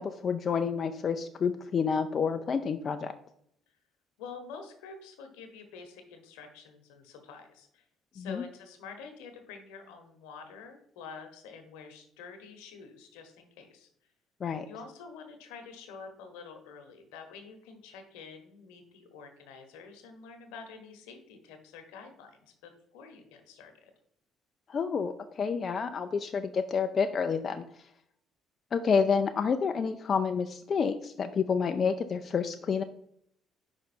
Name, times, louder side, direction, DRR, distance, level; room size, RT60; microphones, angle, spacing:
voice 1, 0.0-3.1 8.2-8.4 14.4-14.7 24.7-27.6 28.7-32.8, left 6 dB, 45° left, 7 dB, 0.4 m, -29 dB
voice 2, 4.2-7.9 8.1-13.9 14.7-23.9, left 5 dB, 85° left, 6 dB, 1.1 m, -48 dB
5.3 x 4.8 x 4.4 m, 0.70 s
supercardioid pair, 65°, 0 cm